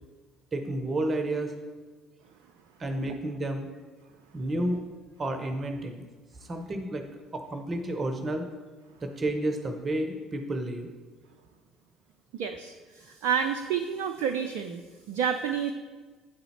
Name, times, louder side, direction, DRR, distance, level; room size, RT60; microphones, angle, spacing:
voice 1, 0.5-1.5 2.8-3.7 4.3-4.8 5.2-6.1 6.5-7.0 7.3-8.5 9.0-10.9 15.5-15.6, right 1 dB, 30° right, 6 dB, 0.7 m, -31 dB
voice 2, 12.3-15.7, right 7 dB, 65° right, 6 dB, 0.3 m, -30 dB
8.7 x 3.9 x 4.2 m, 1.4 s
figure-of-eight pair, 55°, 0 cm